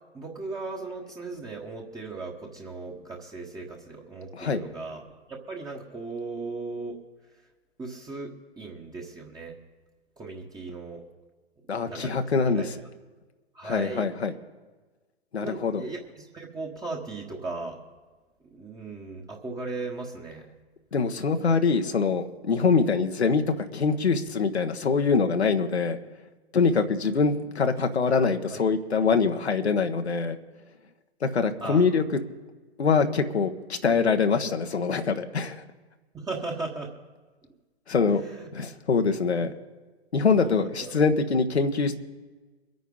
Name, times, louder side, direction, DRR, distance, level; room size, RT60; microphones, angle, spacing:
voice 1, 0.1-7.0 7.8-8.3 8.6-9.6 10.2-11.0 11.8-12.2 12.5-12.6 13.5-14.1 15.4-17.8 18.5-20.5 28.5-28.6 31.6-31.8 32.9-33.1 36.1-36.9 38.2-38.5 40.4-40.9, right 3 dB, 10° right, -1 dB, 1.5 m, -37 dB
voice 2, 11.7-12.7 13.6-14.3 15.3-15.8 20.9-26.0 26.5-30.4 31.2-32.0 32.8-35.6 37.9-38.2 38.5-39.5 40.1-42.0, left 5 dB, 75° left, 6 dB, 1.4 m, -24 dB
24.0 x 9.3 x 3.9 m, 1.3 s
figure-of-eight pair, 110°, 33 cm